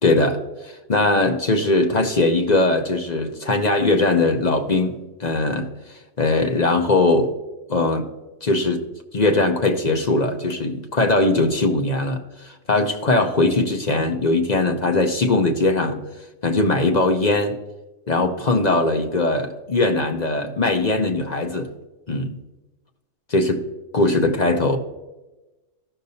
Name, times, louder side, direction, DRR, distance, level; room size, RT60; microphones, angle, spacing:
voice 1, 0.0-5.7 6.2-7.3 7.7-8.1 8.4-8.8 9.1-16.0 16.4-17.6 18.1-21.7 22.1-22.4 23.3-23.6 23.9-24.8, left 2 dB, 40° left, 4 dB, 0.8 m, -20 dB
15.0 x 6.6 x 2.7 m, 1.1 s
omnidirectional pair, 1.3 m